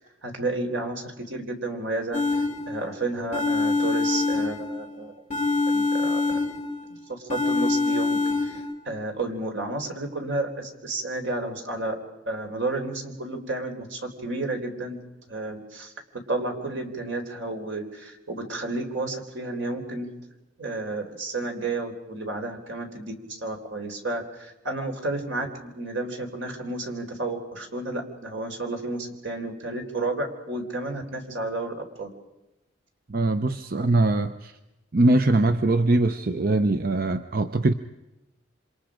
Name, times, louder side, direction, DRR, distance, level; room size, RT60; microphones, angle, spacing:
voice 1, 0.2-5.1 5.7-6.4 6.9-12.0 12.3-15.0 15.3-15.9 16.3-20.1 20.6-32.1, right 2 dB, 80° right, 3 dB, 3.9 m, -31 dB
sound 1, 2.1-2.9 3.3-4.9 5.3-6.9 7.3-8.7, left 3 dB, 45° left, 3.0 m, -25 dB
voice 2, 33.1-34.5 34.9-37.7, right 2 dB, 50° right, 10 dB, 0.7 m, -22 dB
28.0 x 26.0 x 5.1 m, 0.99 s
head